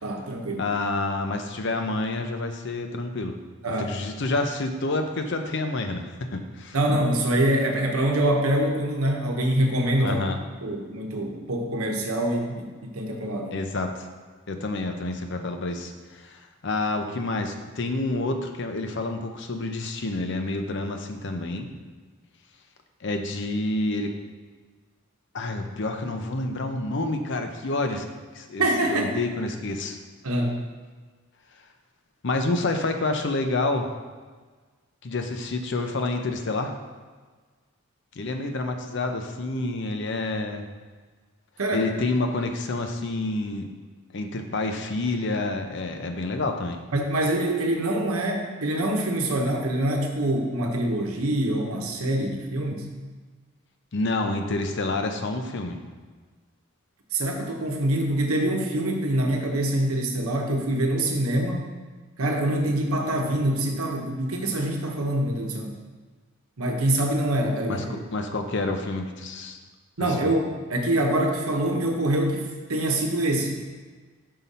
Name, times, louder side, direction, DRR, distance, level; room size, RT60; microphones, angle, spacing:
voice 1, 0.0-0.7 3.6-3.9 6.7-10.2 10.6-13.6 28.6-29.1 30.2-30.6 41.6-41.8 46.9-52.9 57.1-61.6 62.2-65.7 66.6-68.3 70.0-73.6, right 1 dB, 80° right, 2 dB, 1.0 m, -25 dB
voice 2, 0.6-3.3 3.8-6.8 10.0-10.4 13.5-14.1 14.5-21.7 23.0-24.1 25.3-28.0 28.3-28.6 28.9-30.0 32.2-33.9 35.0-36.7 38.2-40.7 41.7-43.7 44.1-46.8 53.9-55.8 67.7-67.8 68.1-69.6 70.0-70.3, left 2 dB, 55° left, 6 dB, 0.6 m, -28 dB
5.7 x 5.4 x 4.2 m, 1.4 s
head